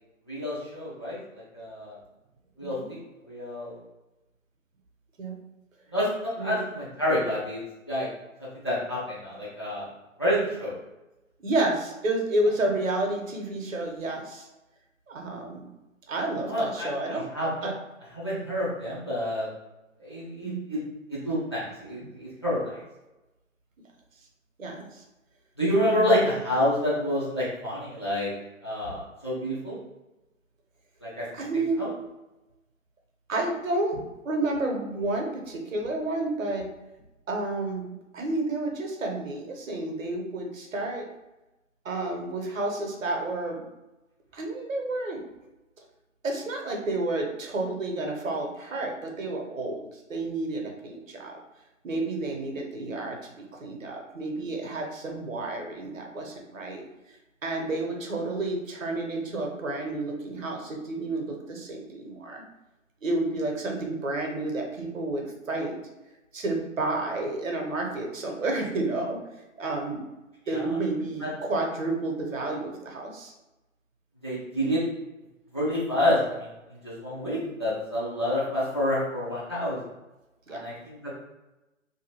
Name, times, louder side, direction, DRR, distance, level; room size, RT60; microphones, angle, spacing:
voice 1, 0.3-2.0 2.6-3.0 3.3-3.8 5.9-7.6 7.9-8.1 8.6-9.9 10.2-10.8 16.5-16.9 17.3-17.5 18.1-19.5 20.0-20.8 21.1-22.8 25.6-28.3 28.6-29.8 31.0-31.3 31.8-31.9 70.5-70.8 71.2-71.3 74.2-74.8 75.5-79.8 80.5-81.1, left 1 dB, 20° left, -9 dB, 0.4 m, -28 dB
voice 2, 2.6-2.9 5.2-5.3 6.4-6.6 11.4-14.5 15.1-15.7 16.1-17.3 17.6-17.7 20.4-20.6 22.0-22.1 24.6-25.0 25.9-26.3 31.3-31.8 33.3-36.7 37.3-41.1 41.8-43.7 44.3-45.2 46.2-51.4 51.8-56.8 57.4-62.4 63.0-65.8 66.3-69.2 69.6-70.0 70.5-73.3 77.3-77.5 80.5-80.6, right 2 dB, 70° right, 1 dB, 0.8 m, -30 dB
2.6 x 2.3 x 2.9 m, 1.0 s
figure-of-eight pair, 135°, 40 cm